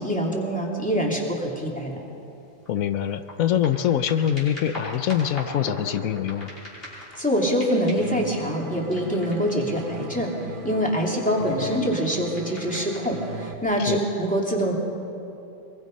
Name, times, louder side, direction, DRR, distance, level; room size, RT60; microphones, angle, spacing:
voice 1, 0.0-2.0 6.9-10.3 10.6-14.7, equal, 5° left, -2 dB, 3.0 m, -25 dB
sound 1, 1.8-1.9 2.3-7.2 7.5-8.2 8.9-10.5 11.3-13.1 13.8-13.9, equal, 45° left, 5.7 m, -41 dB
voice 2, 2.7-6.5 13.9-14.0, left 10 dB, 90° left, 11 dB, 1.2 m, -24 dB
sound 2, 8.0-13.5, right 4 dB, 45° right, 1.0 m, -38 dB
23.5 x 22.5 x 5.4 m, 2.8 s
omnidirectional pair, 1.4 m